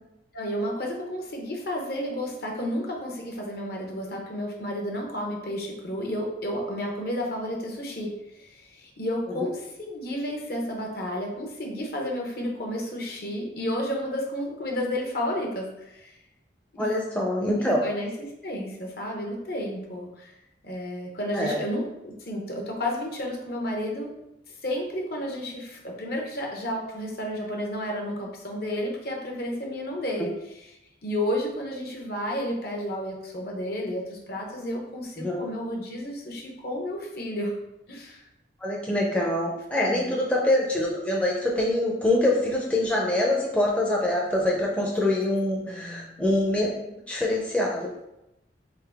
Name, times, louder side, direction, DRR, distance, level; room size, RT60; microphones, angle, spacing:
voice 1, 0.3-16.2 16.7-16.9 17.6-18.1 18.4-20.3 20.6-24.1 24.6-30.3 31.0-37.5 37.9-38.2 39.8-40.1 45.7-46.1, equal, 55° left, 0 dB, 0.9 m, -32 dB
voice 2, 16.8-17.8 21.3-21.5 35.2-35.4 38.6-46.7 47.1-47.9, left 1 dB, 5° left, -3 dB, 0.5 m, -25 dB
3.8 x 3.7 x 3.4 m, 0.88 s
head